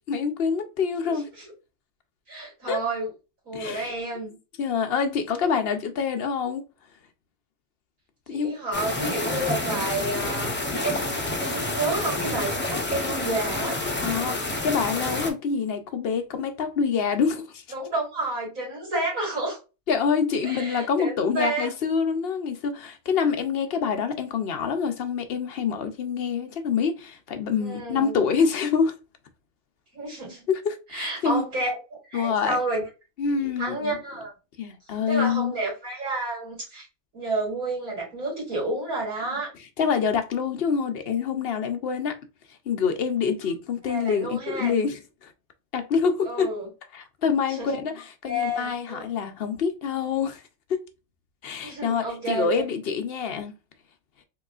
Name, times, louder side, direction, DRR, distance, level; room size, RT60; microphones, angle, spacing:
voice 1, 0.1-1.3 2.7-2.8 3.5-3.9 4.6-6.6 8.3-8.6 9.0-9.1 14.0-17.6 19.9-28.9 30.5-31.5 32.1-32.6 33.2-34.0 34.6-35.6 39.8-42.2 42.7-45.3 45.7-46.5 46.9-50.4 50.7-50.8 51.4-53.5, left 6 dB, 60° left, 0.6 m, -26 dB
voice 2, 2.3-3.1 3.5-4.4 8.3-13.8 17.7-19.6 20.4-21.7 27.6-28.3 29.9-30.4 30.9-31.8 32.1-32.9 33.4-34.3 35.1-36.9 37.1-39.5 43.8-44.7 46.2-46.7 47.5-47.7 48.3-49.0 51.6-52.5, right 2 dB, 65° right, 2.4 m, -30 dB
sound 1, 8.7-15.3, left 2 dB, 15° left, 0.4 m, -28 dB
3.8 x 3.0 x 2.3 m
omnidirectional pair, 1.5 m